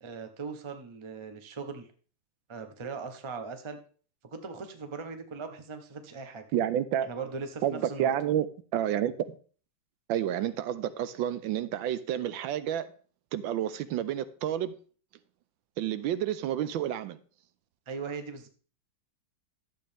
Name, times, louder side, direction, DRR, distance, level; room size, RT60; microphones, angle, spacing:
voice 1, 0.0-1.9 2.5-3.8 4.2-6.4 7.1-8.1 17.9-18.5, right 4 dB, 50° right, 0.3 m, -39 dB
voice 2, 6.5-7.1 7.6-8.5 8.7-9.1 10.1-12.9 13.3-14.7 15.8-17.2, right 11 dB, 80° right, 1.3 m, -29 dB
11.5 x 7.7 x 3.4 m
omnidirectional pair, 2.2 m